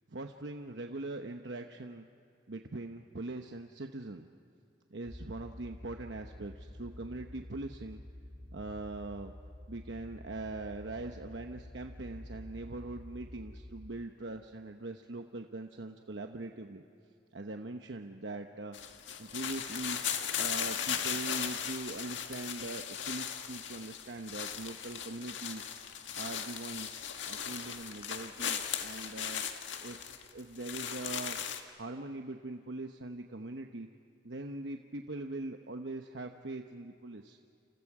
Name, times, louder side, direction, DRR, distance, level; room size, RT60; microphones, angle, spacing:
voice 1, 0.1-2.1 2.5-4.3 4.9-8.0 8.5-9.3 9.7-16.8 17.3-18.8 19.2-20.0 20.4-29.4 29.8-30.0 30.3-31.4 31.8-33.9 34.2-37.4, right 2 dB, 70° right, 5 dB, 1.0 m, -42 dB
sound 1, 5.1-13.7, left 1 dB, ahead, 4.8 m, -49 dB
sound 2, 18.7-31.6, left 8 dB, 85° left, 1.7 m, -37 dB
29.0 x 28.5 x 4.9 m, 2.6 s
head